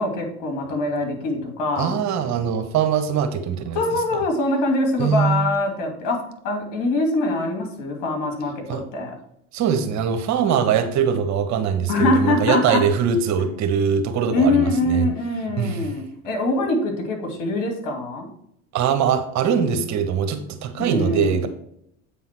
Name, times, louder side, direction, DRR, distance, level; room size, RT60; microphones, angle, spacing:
voice 1, 0.0-2.0 3.7-6.2 6.4-9.1 11.9-12.8 14.3-18.3 20.8-21.5, left 2 dB, 60° left, 2 dB, 2.8 m, -23 dB
voice 2, 1.8-3.8 5.0-5.5 8.7-8.8 9.5-15.1 15.6-15.9 18.7-21.5, right 7 dB, 50° right, 7 dB, 1.2 m, -22 dB
8.3 x 3.8 x 6.0 m, 0.72 s
hypercardioid pair, 85°, 37 cm